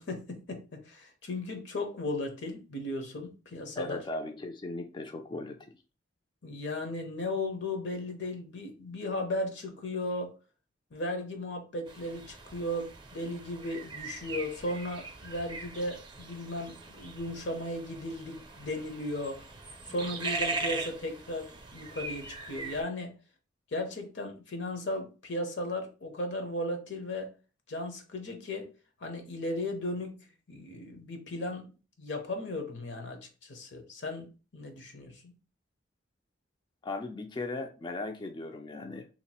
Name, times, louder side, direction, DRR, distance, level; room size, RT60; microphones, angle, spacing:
voice 1, 0.0-4.0 6.4-10.3 10.9-19.5 19.8-23.1 23.7-27.3 27.7-28.7 29.0-31.7 32.0-35.3, left 1 dB, 75° left, 0.9 m, -36 dB
voice 2, 3.8-5.8 36.8-39.1, left 2 dB, 25° left, 0.3 m, -38 dB
sound 1, 11.9-22.8, right 3 dB, 25° right, 0.5 m, -40 dB
2.9 x 2.4 x 4.2 m
head